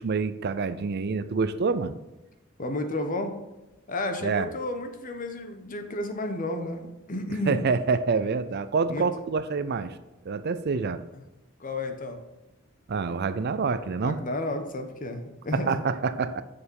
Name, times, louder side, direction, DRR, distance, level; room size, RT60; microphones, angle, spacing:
voice 1, 0.0-2.0 4.2-4.5 7.5-9.9 10.3-11.0 12.9-14.2 15.5-16.4, right 4 dB, 55° right, 13 dB, 0.5 m, -27 dB
voice 2, 2.6-3.4 3.9-7.6 8.9-9.1 11.6-12.2 14.0-15.8, left 2 dB, 45° left, 6 dB, 1.1 m, -32 dB
6.7 x 6.7 x 5.4 m, 1.0 s
head